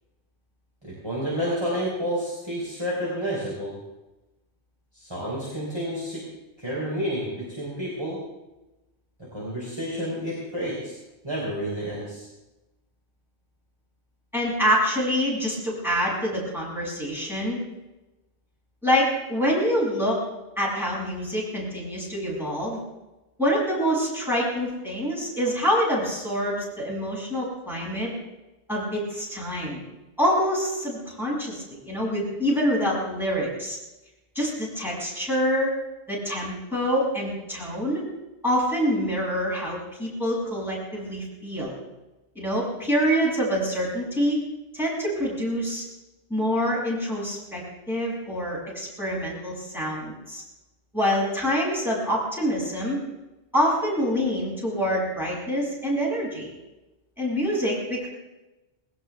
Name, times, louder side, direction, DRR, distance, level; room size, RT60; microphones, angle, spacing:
voice 1, 0.8-3.8 4.9-6.3 6.6-8.2 9.3-10.9 11.2-12.3, equal, 25° right, -6 dB, 4.2 m, -30 dB
voice 2, 14.3-17.6 18.8-20.2 20.6-22.8 23.4-28.1 28.7-29.8 30.2-33.8 34.3-35.7 36.1-38.0 38.4-41.8 42.3-44.4 44.7-45.8 46.3-47.6 47.9-50.4 50.9-53.0 53.5-56.5 57.2-58.1, equal, ahead, -6 dB, 6.9 m, -26 dB
20.5 x 17.5 x 3.5 m, 1.0 s
omnidirectional pair, 1.1 m